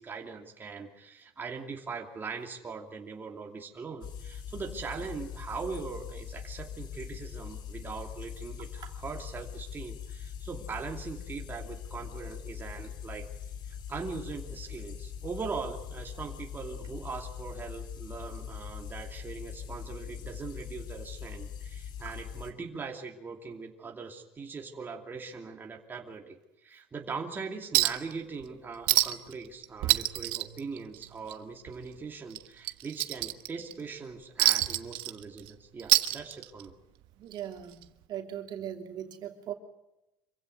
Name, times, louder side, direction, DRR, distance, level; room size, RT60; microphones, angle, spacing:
voice 1, 0.0-13.3 13.7-36.7, right 5 dB, 20° right, 1 dB, 2.8 m, -41 dB
refrigerator song, 4.0-22.5, left 8 dB, 55° left, 3.0 m, -42 dB
Chink clink, 27.7-28.1 28.4-28.5 28.9-29.3 29.6-31.3 31.7-31.8 32.3-33.7 34.4-35.5 35.8-36.7 37.8-37.9, right 18 dB, 75° right, 1.3 m, -26 dB
voice 2, 37.2-37.8 38.1-39.5, right 10 dB, 50° right, 4 dB, 3.0 m, -38 dB
26.5 x 16.0 x 9.6 m, 0.90 s
cardioid pair, 135°, 9 cm